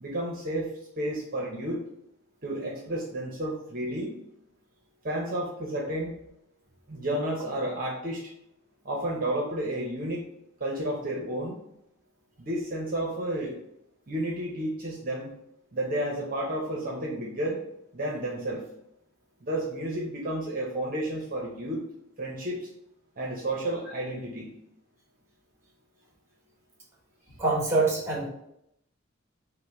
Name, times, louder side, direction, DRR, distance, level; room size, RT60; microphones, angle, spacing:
voice 1, 0.0-0.7 1.0-1.8 2.4-4.1 5.0-6.2 6.9-8.2 8.8-10.2 10.6-11.6 12.4-13.6 14.1-15.3 15.7-17.6 17.9-18.6 19.4-21.8 22.2-22.7 23.2-24.5, right 1 dB, 45° right, -2 dB, 0.8 m, -31 dB
voice 2, 27.4-28.3, right 3 dB, 15° right, -3 dB, 1.3 m, -25 dB
5.5 x 2.1 x 4.5 m, 0.78 s
head